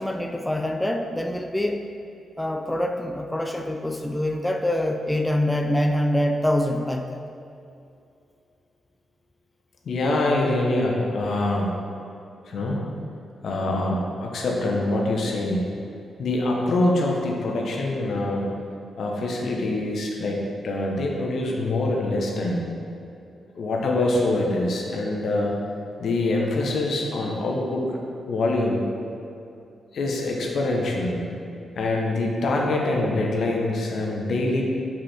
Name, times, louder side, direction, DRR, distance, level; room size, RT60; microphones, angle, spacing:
voice 1, 0.0-1.9 2.4-7.2, left 1 dB, 10° left, 4 dB, 0.5 m, -25 dB
voice 2, 9.8-11.7 12.5-12.8 13.4-15.7 16.2-18.5 19.0-22.6 23.6-25.5 26.0-27.9 28.3-28.8 29.9-31.3 31.8-34.6, left 2 dB, 70° left, -1 dB, 1.0 m, -24 dB
5.5 x 5.3 x 4.3 m, 2.6 s
supercardioid pair, 45°, 0 cm